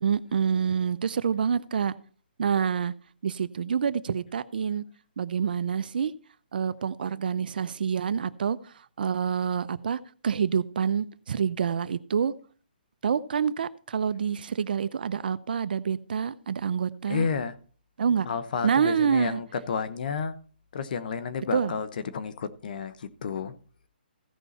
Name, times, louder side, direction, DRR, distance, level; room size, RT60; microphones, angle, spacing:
voice 1, 0.0-1.9 2.4-2.9 3.2-4.8 5.2-6.1 6.5-12.3 13.0-17.3 18.0-18.3 18.6-19.4 21.5-21.7, right 7 dB, 65° right, 0.6 m, -27 dB
voice 2, 17.1-17.6 18.2-20.4 20.7-23.5, left 6 dB, 60° left, 1.0 m, -31 dB
15.5 x 5.5 x 4.1 m
hypercardioid pair, 155°, 5 cm